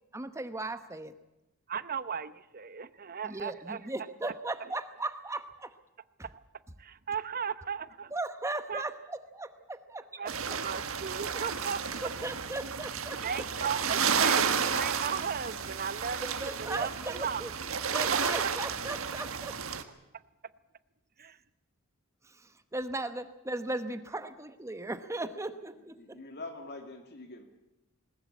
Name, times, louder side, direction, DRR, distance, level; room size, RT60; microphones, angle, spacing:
voice 1, 0.1-1.1 3.2-5.7 6.2-6.3 8.1-10.0 10.5-10.6 12.0-13.7 16.2-17.5 17.9-19.6 22.3-26.2, right 2 dB, 15° right, 10 dB, 1.0 m, -37 dB
voice 2, 1.7-3.8 6.3-6.4 6.8-8.1 8.7-8.8 10.2-11.8 13.2-17.4 18.1-18.5 21.2-21.4, right 6 dB, 45° right, 15 dB, 0.9 m, -36 dB
sound 1, 10.3-19.8, right 6 dB, 65° right, 1.6 m, -32 dB
voice 3, 25.7-27.5, left 2 dB, 50° left, 6 dB, 2.5 m, -45 dB
20.5 x 20.0 x 8.3 m, 0.96 s
head